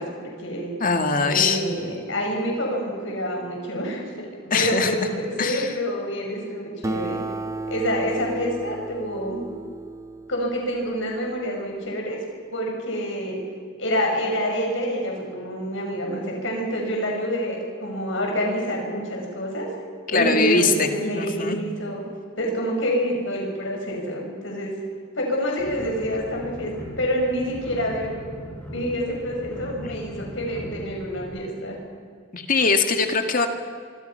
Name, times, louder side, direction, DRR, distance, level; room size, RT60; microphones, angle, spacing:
voice 1, 0.0-0.7 1.2-7.2 7.7-9.4 10.3-12.2 12.5-13.4 13.8-19.7 20.1-22.0 22.4-24.7 25.1-28.2 28.7-31.8, equal, 70° left, 0 dB, 6.1 m, -27 dB
voice 2, 0.8-1.6 4.5-4.9 5.4-5.7 20.1-20.9 21.1-21.6 32.3-33.5, left 4 dB, 45° left, 6 dB, 2.1 m, -21 dB
Acoustic guitar, 6.8-11.7, right 2 dB, 15° right, 0.6 m, -34 dB
sound 1, 25.6-31.3, equal, 10° left, 6.0 m, -38 dB
25.5 x 25.0 x 5.8 m, 2.1 s
head